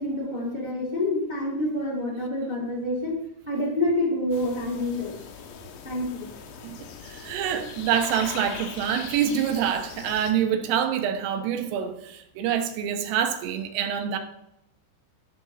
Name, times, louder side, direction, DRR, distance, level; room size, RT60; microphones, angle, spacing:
voice 1, 0.0-3.2 3.5-5.1 5.8-6.3, left 1 dB, 5° right, -5 dB, 2.4 m, -27 dB
sound 1, 4.3-10.3, left 7 dB, 70° left, 3.3 m, -41 dB
voice 2, 7.0-14.2, right 9 dB, 80° right, 5 dB, 3.8 m, -26 dB
12.5 x 5.3 x 5.8 m, 0.84 s
omnidirectional pair, 5.9 m